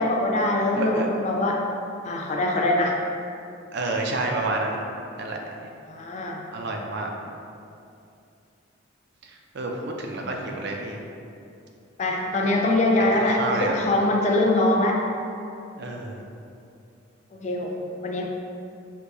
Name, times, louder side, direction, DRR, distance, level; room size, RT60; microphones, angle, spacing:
voice 1, 0.0-1.6 2.0-2.9 5.9-6.4 12.0-15.0 17.4-18.3, left 1 dB, 35° left, 0 dB, 0.4 m, -23 dB
voice 2, 0.7-1.1 3.7-4.8 5.2-5.4 6.5-7.1 9.5-11.0 12.4-12.6 13.3-13.8 15.8-16.2, right 2 dB, 55° right, 1 dB, 0.5 m, -29 dB
6.1 x 2.2 x 2.6 m, 2.6 s
head